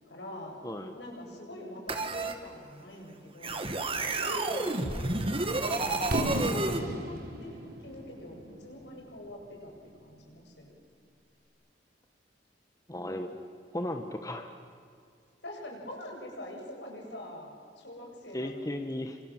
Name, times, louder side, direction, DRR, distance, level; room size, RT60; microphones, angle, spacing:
voice 1, 0.0-0.6 0.9-3.6 4.1-10.8 12.9-13.2 15.4-18.7, left 1 dB, 75° left, 1 dB, 7.9 m, -44 dB
voice 2, 0.6-1.0 12.9-13.3 13.7-14.5 18.3-19.2, left 1 dB, 20° left, 5 dB, 1.4 m, -35 dB
sound 1, 1.9-2.3 3.4-6.8, right 2 dB, 30° right, 2.1 m, -30 dB
Fireworks, 6.1-10.0, equal, 60° right, 3.7 m, -35 dB
29.0 x 26.5 x 7.6 m, 2.2 s
head